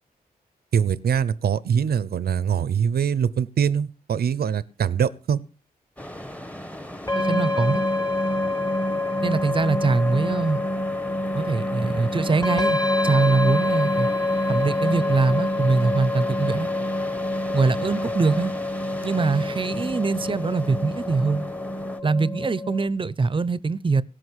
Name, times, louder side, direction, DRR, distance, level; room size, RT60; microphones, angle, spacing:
voice 1, 0.7-5.4, right 7 dB, 90° right, 0.8 m, -23 dB
sound 1, 6.0-22.0, equal, 10° left, 1.2 m, -37 dB
sound 2, 7.1-22.9, left 2 dB, 25° left, 1.7 m, -26 dB
voice 2, 7.2-7.8 9.2-10.6 11.3-14.1 14.5-16.7 17.5-18.5 19.0-21.4 22.0-24.0, right 4 dB, 35° right, 0.7 m, -23 dB
17.5 x 6.3 x 8.1 m
wide cardioid pair, 105°, 16 cm